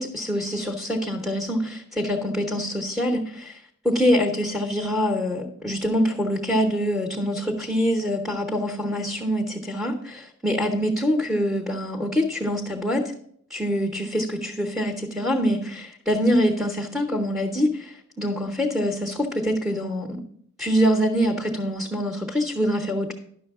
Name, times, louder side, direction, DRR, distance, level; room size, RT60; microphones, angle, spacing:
voice 1, 0.0-3.6 3.8-13.1 13.5-20.2 20.6-23.1, equal, ahead, 0 dB, 0.8 m, -25 dB
10.5 x 6.3 x 3.5 m, 0.66 s
head